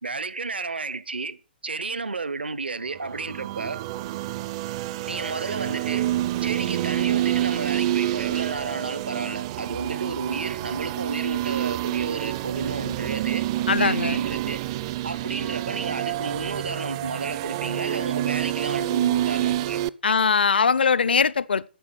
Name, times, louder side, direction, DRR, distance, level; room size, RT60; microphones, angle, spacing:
voice 1, 0.0-1.4 1.6-3.9 5.1-6.1 6.4-13.5 13.8-14.6 15.0-20.2, right 4 dB, 75° right, 0.9 m, -32 dB
sound 1, 3.0-19.9, right 14 dB, 35° right, 0.5 m, -28 dB
voice 2, 13.7-14.2 20.0-21.7, left 5 dB, 70° left, 0.6 m, -21 dB
9.8 x 7.6 x 7.9 m
figure-of-eight pair, 120°, 6 cm